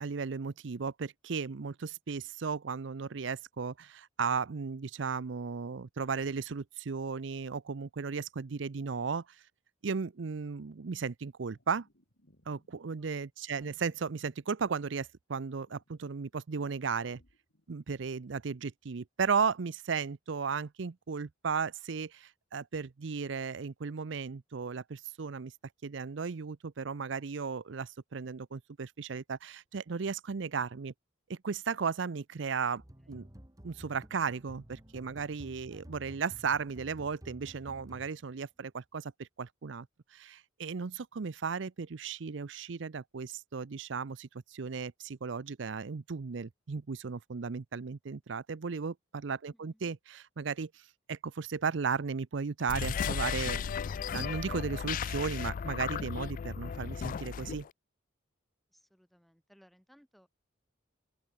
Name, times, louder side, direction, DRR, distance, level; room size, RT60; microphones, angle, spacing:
voice 1, 0.0-9.4 9.8-11.9 12.5-17.2 17.7-25.5 25.8-30.9 31.3-32.8 33.1-33.2 33.6-39.9 40.1-53.6 54.1-57.7, right 5 dB, 65° right, 0.6 m, -35 dB
sound 1, 11.5-12.7 13.5-15.1 15.6-17.8, equal, 65° left, 6.1 m, -67 dB
voice 2, 32.6-33.2 35.7-36.1 49.5-49.9 58.7-60.3, equal, ahead, 4.5 m, -65 dB
sound 2, 32.8-38.5, equal, 20° right, 1.8 m, -52 dB
sound 3, 52.6-57.7, left 7 dB, 45° left, 0.3 m, -35 dB
open air
head